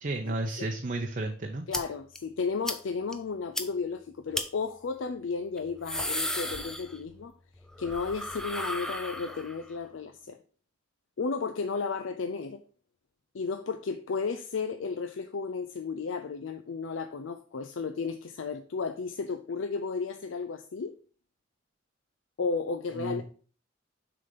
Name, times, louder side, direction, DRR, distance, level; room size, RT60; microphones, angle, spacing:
voice 1, 0.0-1.6 22.9-23.2, right 2 dB, 45° right, 0.6 m, -32 dB
voice 2, 1.7-7.3 7.8-10.4 11.2-12.6 13.3-21.0 22.4-23.2, left 4 dB, 85° left, 0.5 m, -33 dB
sound 1, 1.7-1.8 2.2-2.3 2.7-2.8 3.1-3.2 3.6-3.7 4.3-4.5 5.6-7.2 7.5-9.7, left 1 dB, 5° left, 0.6 m, -34 dB
6.6 x 3.9 x 5.3 m
head